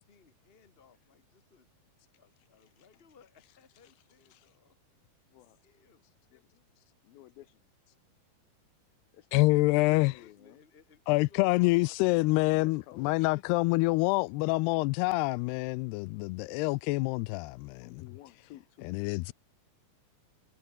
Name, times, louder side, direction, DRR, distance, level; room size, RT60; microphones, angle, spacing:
voice 1, 0.0-1.7 2.2-4.7 5.6-6.0 9.7-12.7, left 6 dB, 25° left, 1.4 m, -60 dB
voice 2, 6.3-6.6 7.0-7.6 9.1-10.6 12.4-13.6 17.8-18.9, left 14 dB, 75° left, 2.6 m, -54 dB
voice 3, 9.3-10.1 11.1-18.0 18.8-19.3, left 23 dB, 90° left, 2.6 m, -26 dB
omnidirectional pair, 4.6 m